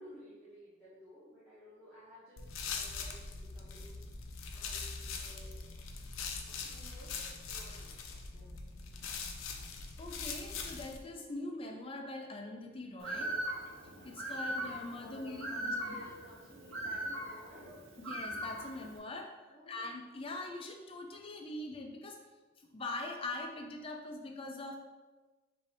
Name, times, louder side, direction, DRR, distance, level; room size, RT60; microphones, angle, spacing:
voice 1, 0.0-4.0 4.5-5.7 6.5-8.5 9.0-9.2 15.0-17.8 19.5-19.8 20.1-20.2 20.5-20.7, equal, 5° left, -12 dB, 1.0 m, -55 dB
sound 1, 2.4-11.0, left 4 dB, 80° left, 0.5 m, -42 dB
voice 2, 10.0-13.3 14.0-16.0 18.0-19.4 19.7-22.2 22.6-24.8, left 2 dB, 25° left, 2 dB, 0.4 m, -42 dB
Bird, 13.0-19.0, right 1 dB, 75° right, 0.9 m, -40 dB
5.3 x 2.7 x 3.4 m, 1.2 s
head